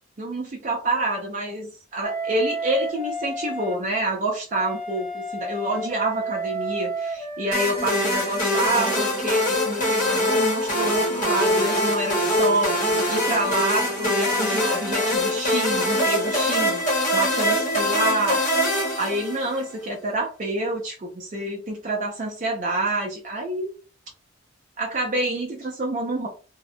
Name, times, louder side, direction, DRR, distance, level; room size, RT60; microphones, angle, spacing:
voice 1, 0.2-12.7 13.1-16.8 17.1-18.4 18.9-23.7 24.8-26.3, right 1 dB, 40° right, 0 dB, 0.4 m, -27 dB
Wind instrument woodwind instrument, 2.0-3.8 4.5-9.3 9.9-15.2, right 2 dB, 10° left, 0.7 m, -33 dB
sound 1, 7.5-19.7, left 1 dB, 40° left, 0.9 m, -23 dB
2.6 x 2.1 x 2.6 m, 0.36 s
head